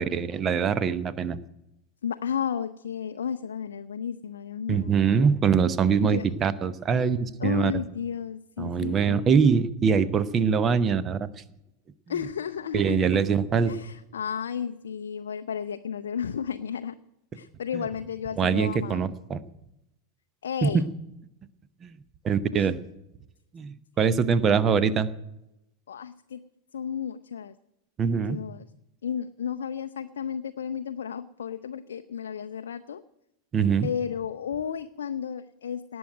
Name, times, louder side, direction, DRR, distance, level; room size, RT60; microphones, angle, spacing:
voice 1, 0.0-1.4 4.7-7.7 8.6-11.3 12.7-13.7 17.7-17.8 18.4-19.4 20.6-20.8 21.8-21.9 22.2-22.7 23.5-25.1 28.0-28.4 33.5-33.9, right 6 dB, 25° right, 16 dB, 0.8 m, -23 dB
voice 2, 2.0-4.9 6.0-6.3 7.4-9.5 12.1-13.2 13.7-16.9 17.3-19.1 20.4-20.8 22.5-22.7 24.4-24.5 25.9-26.4 26.7-27.5 28.2-28.7 29.0-33.0 33.8-36.0, left 8 dB, 65° left, 8 dB, 0.5 m, -33 dB
18.5 x 6.3 x 9.0 m, 0.89 s
figure-of-eight pair, 90°, 0 cm